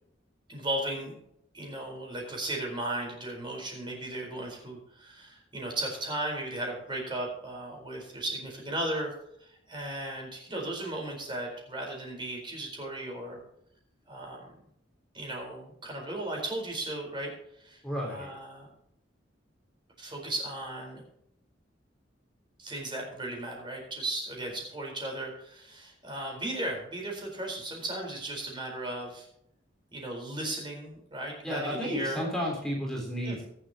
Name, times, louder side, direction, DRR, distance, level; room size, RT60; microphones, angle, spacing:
voice 1, 0.5-1.1 1.5-9.1 9.4-13.4 14.1-14.5 15.1-18.7 20.0-21.0 22.6-29.3 29.9-32.3 33.2-33.4, right 1 dB, 25° right, 0 dB, 4.3 m, -36 dB
voice 2, 17.8-18.3 31.4-33.4, equal, 5° left, -2 dB, 3.6 m, -32 dB
23.5 x 7.9 x 2.9 m, 0.74 s
head